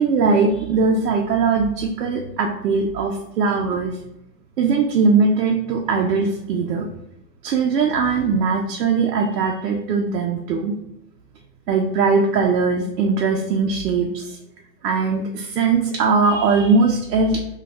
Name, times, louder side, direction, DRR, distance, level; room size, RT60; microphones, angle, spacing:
voice 1, 0.0-3.9 4.6-6.9 7.4-10.8 11.7-14.4 14.8-17.4, right 4 dB, 70° right, 1 dB, 0.5 m, -20 dB
2.3 x 2.3 x 4.0 m, 0.82 s
hypercardioid pair, 175°, 49 cm